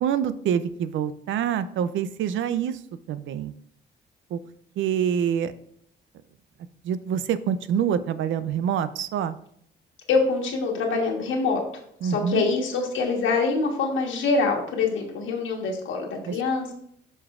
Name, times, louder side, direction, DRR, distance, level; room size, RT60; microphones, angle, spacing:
voice 1, 0.0-2.8 3.1-3.5 4.3-4.4 4.8-5.5 6.8-9.4 12.0-12.4 16.3-16.4, right 8 dB, 75° right, 14 dB, 0.5 m, -26 dB
voice 2, 10.1-11.6 12.0-16.7, left 4 dB, 80° left, 1 dB, 1.5 m, -25 dB
9.3 x 5.4 x 2.5 m, 0.68 s
cardioid pair, 90°, 20 cm